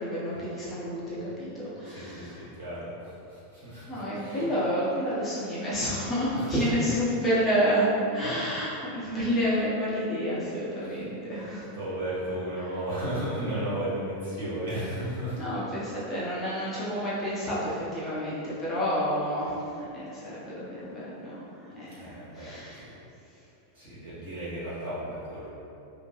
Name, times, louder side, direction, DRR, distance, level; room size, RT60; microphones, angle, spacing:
voice 1, 0.0-1.5 1.8-2.3 3.9-11.7 15.4-19.5 19.9-21.4 21.8-22.8, equal, 20° left, -9 dB, 0.7 m, -29 dB
voice 2, 1.8-4.5 6.3-6.6 8.2-8.3 10.8-11.1 11.4-15.6 22.0-22.9 23.7-25.5, right 1 dB, 55° right, -11 dB, 1.5 m, -35 dB
2.9 x 2.1 x 3.0 m, 2.7 s
figure-of-eight pair, 90°, 0 cm